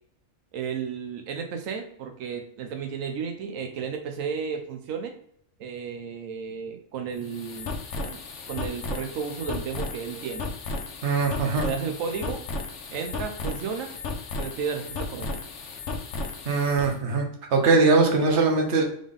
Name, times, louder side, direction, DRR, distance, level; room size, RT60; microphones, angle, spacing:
voice 1, 0.5-5.1 5.6-8.2 8.5-10.5 11.6-12.4 12.9-13.9 14.4-15.3, right 6 dB, 90° right, 5 dB, 1.0 m, -33 dB
sound 1, 7.1-16.9, left 3 dB, 70° left, 1.0 m, -34 dB
voice 2, 11.0-11.6 16.5-17.2 17.5-18.8, right 3 dB, 60° right, 2 dB, 1.2 m, -21 dB
3.8 x 3.4 x 3.5 m, 0.67 s
omnidirectional pair, 1.3 m